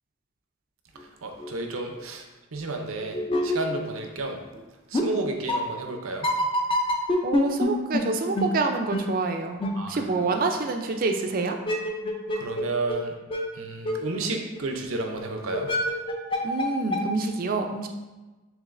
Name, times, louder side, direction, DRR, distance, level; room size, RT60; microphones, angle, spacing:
sound 1, 1.0-1.1 1.4-1.5 2.0-2.1 2.8-4.3 4.6-4.7 4.9-5.0 5.5-5.6 6.2-7.7 7.9-8.0 8.3-8.5 8.9-9.0 9.6-9.7 11.5-12.6 12.9-13.0 13.3-13.4 13.8-13.9 14.5-14.6 15.2-15.3 15.5-16.6 16.9-17.0, left 1 dB, 25° left, 0.4 m, -25 dB
voice 1, 1.2-2.2 2.5-4.4 4.9-6.3 9.8-9.9 12.4-13.1 13.6-15.7, right 2 dB, 85° right, 3 dB, 0.6 m, -31 dB
voice 2, 7.2-9.6 9.9-11.6 16.4-17.9, right 3 dB, 45° right, 5 dB, 0.4 m, -27 dB
7.1 x 3.0 x 2.5 m, 1.2 s
head